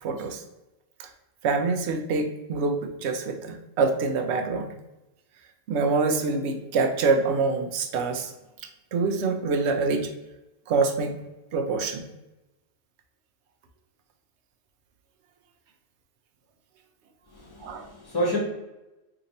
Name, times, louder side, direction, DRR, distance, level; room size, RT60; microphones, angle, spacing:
voice 1, 0.0-0.4 1.0-1.1 1.4-4.7 5.7-8.3 8.6-10.1 10.7-11.1 11.5-12.0 17.6-17.9, right 4 dB, 90° right, 5 dB, 0.9 m, -25 dB
voice 2, 17.3-18.4, equal, 20° left, -4 dB, 1.1 m, -29 dB
2.8 x 2.6 x 4.0 m, 0.99 s
omnidirectional pair, 1.1 m